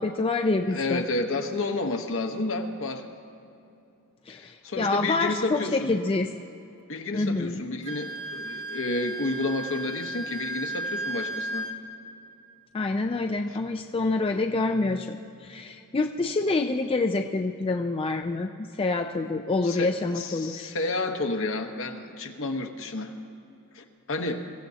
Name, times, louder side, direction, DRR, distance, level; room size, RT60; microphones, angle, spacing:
voice 1, 0.0-1.0 4.3-6.3 7.1-7.6 12.7-20.7, left 3 dB, 25° left, 4 dB, 0.4 m, -27 dB
voice 2, 0.7-3.1 4.3-6.0 6.9-11.7 13.5-13.6 19.6-23.1 23.7-24.4, left 2 dB, 60° left, 4 dB, 1.1 m, -31 dB
Wind instrument woodwind instrument, 7.8-11.8, right 1 dB, 30° right, 0.9 m, -34 dB
23.5 x 14.5 x 2.8 m, 2.8 s
head